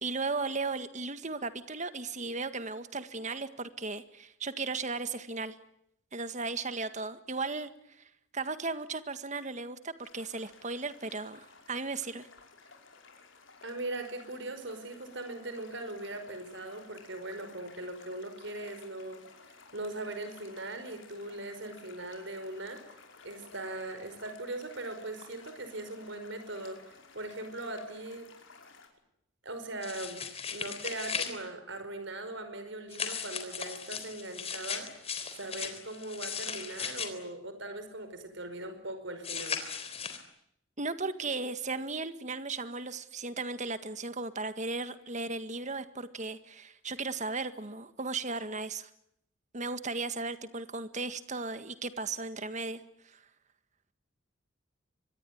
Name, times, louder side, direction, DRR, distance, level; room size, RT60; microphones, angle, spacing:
voice 1, 0.0-5.6 6.1-7.7 8.3-12.3 40.8-48.9 49.5-52.8, right 3 dB, 35° right, 11 dB, 1.8 m, -36 dB
sound 1, 10.0-28.9, left 4 dB, 70° left, 5.5 m, -55 dB
voice 2, 13.6-22.9 23.2-28.3 29.4-30.2 30.5-34.9 35.3-39.6, right 2 dB, 65° right, 9 dB, 5.2 m, -40 dB
sound 2, 29.8-31.3 32.9-37.1 39.2-40.2, left 6 dB, 30° left, 3.7 m, -37 dB
25.0 x 20.5 x 9.5 m, 0.76 s
head